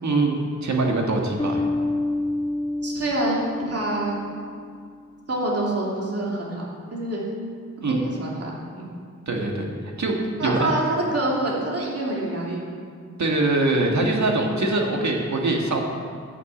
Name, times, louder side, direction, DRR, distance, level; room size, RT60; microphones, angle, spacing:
voice 1, 0.0-1.7 7.8-8.0 9.3-9.7 10.0-10.7 13.2-15.8, right 2 dB, 75° right, 1 dB, 1.7 m, -23 dB
Bass guitar, 1.4-4.9, left 2 dB, 15° left, 0.6 m, -28 dB
voice 2, 2.8-4.2 5.3-6.6 6.9-7.3 8.0-8.9 10.4-10.8 11.1-12.7, right 1 dB, 55° right, -4 dB, 2.9 m, -26 dB
10.5 x 6.2 x 8.5 m, 2.1 s
wide cardioid pair, 90°, 29 cm